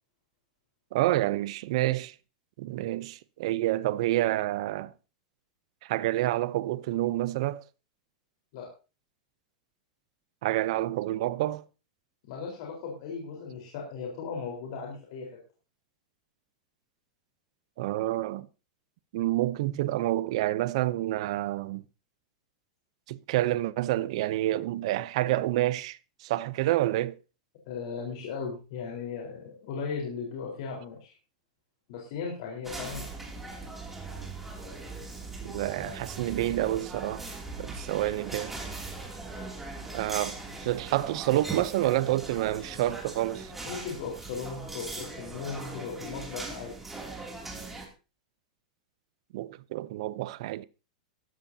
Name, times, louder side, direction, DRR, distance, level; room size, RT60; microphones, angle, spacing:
voice 1, 0.9-2.1 2.6-4.9 5.8-7.6 10.4-11.6 17.8-18.5 19.1-21.8 23.1-27.2 35.4-37.2 37.6-38.6 39.9-43.5 49.3-50.6, right 15 dB, 55° right, 0.6 m, -28 dB
voice 2, 12.3-15.3 27.7-31.1 31.9-33.0 43.6-46.7, left 5 dB, 50° left, 4.2 m, -37 dB
sound 1, 32.6-47.9, right 3 dB, 5° right, 2.7 m, -40 dB
16.0 x 13.0 x 2.8 m
supercardioid pair, 165°, 4 cm